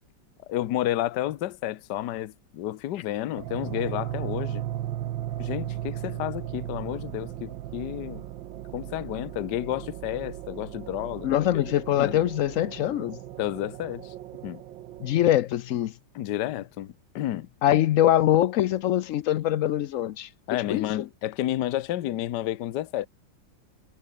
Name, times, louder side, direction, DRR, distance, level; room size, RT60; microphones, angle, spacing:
voice 1, 0.5-4.6 5.4-8.2 8.7-11.3 11.5-11.6 12.0-12.2 13.4-14.1 14.4-14.6 16.1-17.8 20.5-23.1, left 13 dB, 65° left, 1.3 m, -31 dB
sound 1, 3.4-15.3, right 13 dB, 80° right, 1.6 m, -36 dB
voice 2, 11.2-13.2 15.0-15.9 17.6-20.3 20.7-21.0, left 12 dB, 90° left, 0.7 m, -23 dB
omnidirectional pair, 2.1 m